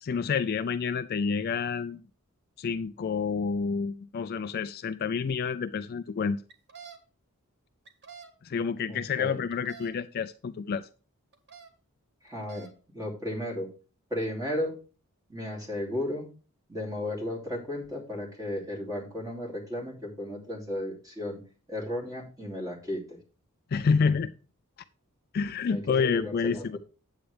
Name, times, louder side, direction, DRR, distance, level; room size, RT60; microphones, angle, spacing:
voice 1, 0.0-2.0 2.6-6.4 8.4-10.9 23.7-24.3 25.3-26.8, left 5 dB, 45° left, 0.3 m, -28 dB
sound 1, 6.5-7.0 7.9-8.3 9.5-9.9 11.3-11.7 12.3-12.7, right 6 dB, 50° right, 1.5 m, -47 dB
voice 2, 8.9-9.4 12.2-12.7 12.9-13.7 14.1-14.7 15.3-16.3 16.7-21.4 21.7-23.2 25.7-26.8, left 1 dB, 15° right, 2.9 m, -34 dB
8.8 x 8.2 x 3.3 m
head